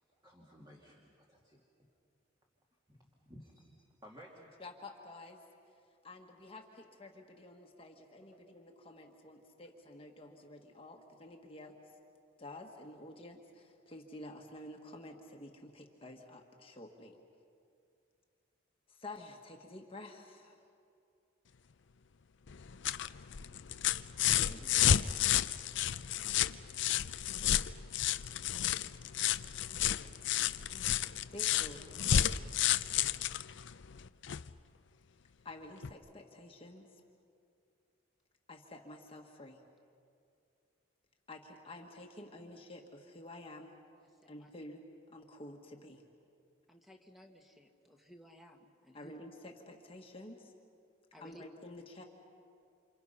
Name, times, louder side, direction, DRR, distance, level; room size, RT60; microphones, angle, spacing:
voice 1, 0.2-1.6 2.9-4.5, equal, 20° right, -2 dB, 2.4 m, -56 dB
voice 2, 4.6-5.4 6.0-11.7 12.4-17.2 18.9-20.6 24.4-25.0 31.3-31.9 35.4-36.9 38.5-39.6 41.3-43.7 44.3-46.0 48.9-50.5 51.2-52.0, left 1 dB, 30° left, 2 dB, 1.6 m, -50 dB
sound 1, 22.5-34.5 35.8-35.9, left 10 dB, 60° left, 0.5 m, -31 dB
voice 3, 44.0-44.5 46.7-49.2 51.1-51.4, equal, ahead, 3 dB, 1.7 m, -57 dB
29.0 x 27.5 x 5.7 m, 2.5 s
head